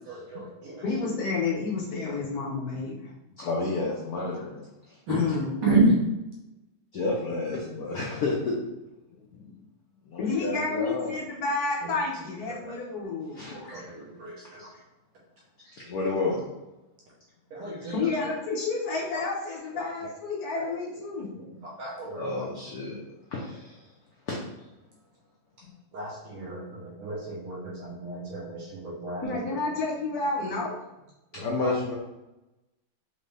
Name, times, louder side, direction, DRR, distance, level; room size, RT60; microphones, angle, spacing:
voice 1, 0.1-0.8 2.0-2.1 5.1-5.2 5.6-5.9 12.5-12.8 13.7-14.7 17.5-18.1 20.6-20.7 21.6-22.5 25.9-29.2 31.6-31.7, right 2 dB, 75° right, -4 dB, 1.7 m, -30 dB
voice 2, 0.8-3.1 5.1-5.8 9.3-9.5 10.2-13.4 17.9-21.3 29.2-30.8, left 4 dB, 55° left, -4 dB, 1.1 m, -30 dB
voice 3, 3.4-4.7 6.9-8.6 10.1-11.2 13.3-13.8 14.6-14.7 15.6-16.5 17.8-17.9 21.5-21.6 22.2-23.0 23.3-23.8 24.3-24.4 31.3-31.9, left 3 dB, 75° left, -4 dB, 0.8 m, -31 dB
4.6 x 2.6 x 3.2 m, 0.98 s
omnidirectional pair, 2.4 m